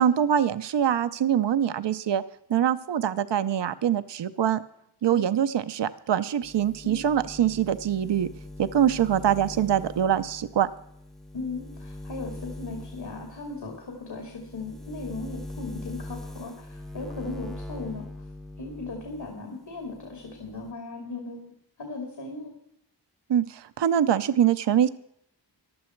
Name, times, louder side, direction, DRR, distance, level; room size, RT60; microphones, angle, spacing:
voice 1, 0.0-2.2 2.5-4.6 5.0-8.3 8.6-10.7 23.3-24.9, right 9 dB, 70° right, 12 dB, 0.7 m, -24 dB
sound 1, 6.4-19.4 19.7-20.7, left 1 dB, ahead, 0.7 m, -42 dB
voice 2, 11.3-18.0 18.6-21.5 21.8-22.5, left 3 dB, 65° left, 1 dB, 2.9 m, -37 dB
15.0 x 11.0 x 4.5 m, 0.74 s
cardioid pair, 55°, 44 cm